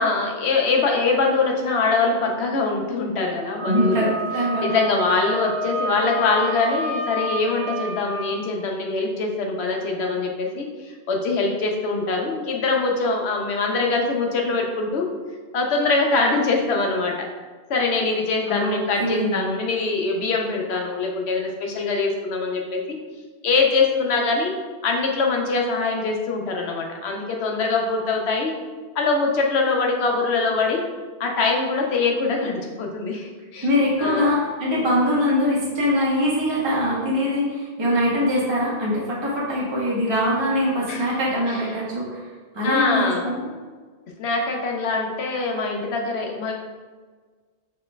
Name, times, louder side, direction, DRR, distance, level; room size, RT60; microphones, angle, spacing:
voice 1, 0.0-4.1 4.6-15.1 15.5-17.3 17.7-23.0 23.4-24.5 24.8-28.5 28.9-30.8 31.2-33.7 34.0-34.3 40.9-41.1 41.5-41.6 42.6-43.2 44.2-46.5, left 3 dB, 75° left, 1 dB, 1.0 m, -23 dB
Wind instrument woodwind instrument, 3.6-8.3, equal, 35° left, 1.5 m, -29 dB
voice 2, 3.7-4.7 18.5-18.7 19.0-19.4 33.6-42.2 42.5-43.5, left 1 dB, 25° right, -6 dB, 0.9 m, -22 dB
6.4 x 3.1 x 2.2 m, 1.4 s
omnidirectional pair, 1.1 m